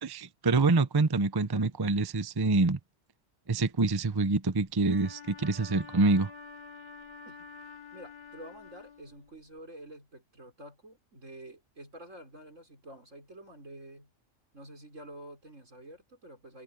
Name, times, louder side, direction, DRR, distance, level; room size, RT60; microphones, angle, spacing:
voice 1, 0.0-2.8 3.5-6.3, right 3 dB, 25° right, 0.7 m, -26 dB
Wind instrument woodwind instrument, 4.8-9.5, left 5 dB, 20° left, 3.7 m, -48 dB
voice 2, 7.9-14.1 14.5-16.6, right 1 dB, 75° right, 5.9 m, -49 dB
omnidirectional pair, 1.3 m